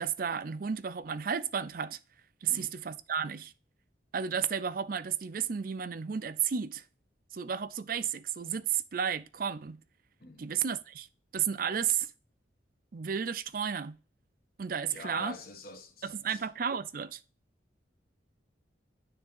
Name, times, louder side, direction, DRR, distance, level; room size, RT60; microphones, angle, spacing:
voice 1, 0.0-2.0 2.4-3.5 4.1-6.8 7.3-9.8 10.4-11.1 11.3-12.1 12.9-14.0 14.6-15.4 16.0-17.2, right 7 dB, 50° right, 0.5 m, -32 dB
voice 2, 2.5-2.8 10.2-10.5 14.9-16.5, left 3 dB, 55° left, 1.3 m, -46 dB
9.7 x 3.6 x 5.4 m
head